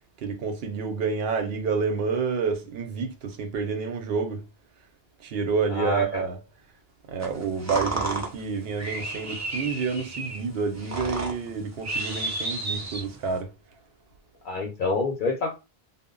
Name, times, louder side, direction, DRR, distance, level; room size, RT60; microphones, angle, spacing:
voice 1, 0.2-4.4 5.2-6.4 7.1-13.5, right 5 dB, 75° right, 0.8 m, -29 dB
voice 2, 5.7-6.2 14.4-15.5, left 3 dB, 60° left, 0.6 m, -27 dB
sound 1, 7.2-13.4, right 2 dB, 25° right, 0.4 m, -32 dB
2.1 x 2.0 x 3.6 m
omnidirectional pair, 1.0 m